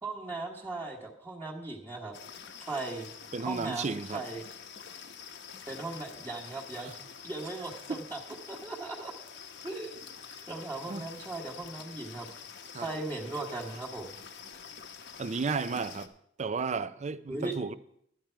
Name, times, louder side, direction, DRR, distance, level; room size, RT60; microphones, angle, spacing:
voice 1, 0.0-2.1 2.6-3.1 3.4-4.4 5.7-8.2 8.5-9.1 9.6-10.0 10.5-12.3 12.7-14.1 17.3-17.5, right 2 dB, 15° right, 1.4 m, -38 dB
sound 1, 2.1-16.1, left 7 dB, 65° left, 0.9 m, -47 dB
voice 2, 3.3-4.2 6.8-6.9 7.9-8.0 10.9-11.1 12.7-12.9 15.2-16.1 16.4-17.7, right 4 dB, 35° right, 0.5 m, -33 dB
12.0 x 10.5 x 4.5 m
head